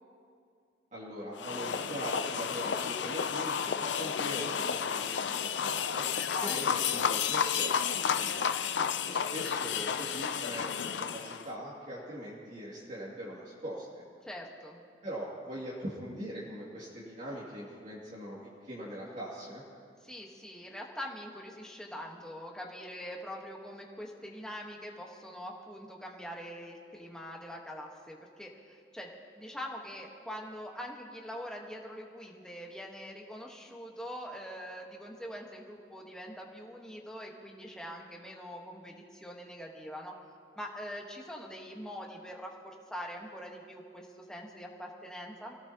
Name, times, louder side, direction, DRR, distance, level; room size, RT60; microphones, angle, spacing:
voice 1, 0.9-6.0 6.4-8.5 9.0-14.0 15.0-19.6, equal, 45° right, -6 dB, 2.4 m, -41 dB
sound 1, 1.4-11.5, left 7 dB, 85° left, 0.6 m, -31 dB
voice 2, 14.2-14.8 20.0-29.1 29.4-40.1 40.6-45.5, equal, 5° left, -1 dB, 1.3 m, -43 dB
24.0 x 17.0 x 2.9 m, 2.3 s
head